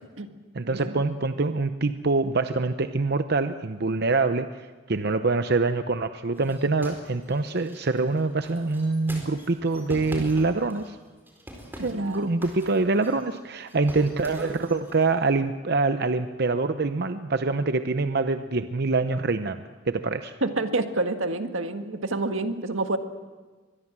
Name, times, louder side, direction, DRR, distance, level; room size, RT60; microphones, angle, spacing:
voice 1, 0.5-11.0 11.8-20.3, right 3 dB, 55° right, 9 dB, 0.7 m, -25 dB
sound 1, 6.3-11.0 11.3-13.4 13.7-15.1, equal, 10° right, 4.3 m, -42 dB
voice 2, 11.8-12.3 20.4-23.0, right 2 dB, 85° right, 7 dB, 1.7 m, -28 dB
24.5 x 21.0 x 7.5 m, 1.3 s
head